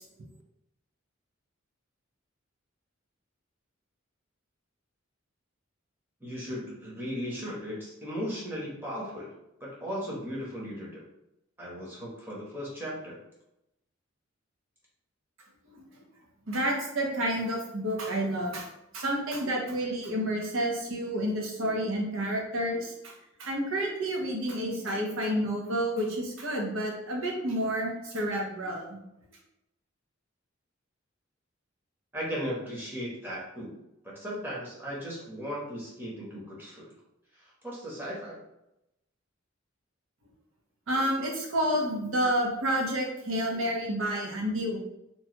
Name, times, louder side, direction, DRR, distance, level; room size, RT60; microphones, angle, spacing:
voice 1, 6.2-9.3 9.6-11.0 11.6-13.2 32.1-33.8 34.0-36.9 37.3-38.4, equal, 10° right, -6 dB, 0.9 m, -37 dB
voice 2, 16.5-18.7 18.9-23.1 23.4-29.0 40.9-44.8, equal, 80° right, -1 dB, 0.8 m, -29 dB
3.0 x 2.3 x 2.9 m, 0.86 s
head